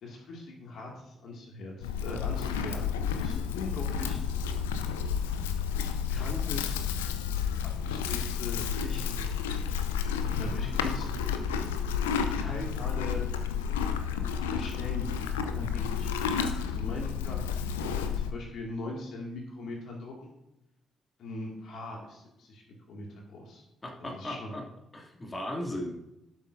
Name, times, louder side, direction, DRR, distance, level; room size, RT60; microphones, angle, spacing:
voice 1, 0.0-4.2 6.1-7.4 7.8-9.5 10.3-11.5 12.3-13.3 14.5-16.1 16.3-17.4 17.6-20.3 21.2-22.6 22.9-23.6 24.0-24.6, left 2 dB, 60° left, -1 dB, 2.2 m, -41 dB
Livestock farm animals working animals, 1.8-18.3, left 7 dB, 80° left, 0.6 m, -31 dB
voice 2, 23.8-24.6 24.9-26.0, left 1 dB, 25° left, 0 dB, 2.5 m, -36 dB
17.0 x 8.2 x 2.7 m, 0.88 s
figure-of-eight pair, 40°, 0 cm